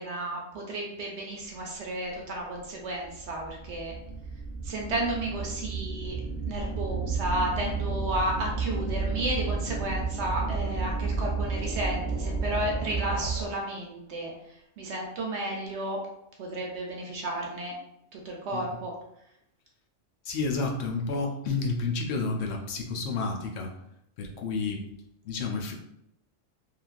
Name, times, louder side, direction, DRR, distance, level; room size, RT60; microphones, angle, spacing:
voice 1, 0.0-3.9 4.6-6.2 6.4-14.3 14.8-16.0 16.4-17.7 18.1-18.9, right 1 dB, 70° right, 0 dB, 0.8 m, -32 dB
sound 1, 2.2-2.3 3.0-13.7, right 4 dB, 10° left, 1.4 m, -32 dB
voice 2, 18.5-18.8 20.2-23.7 24.2-24.8 25.2-25.7, left 4 dB, 70° left, 1 dB, 0.8 m, -30 dB
3.0 x 2.5 x 2.4 m, 0.79 s
omnidirectional pair, 1.3 m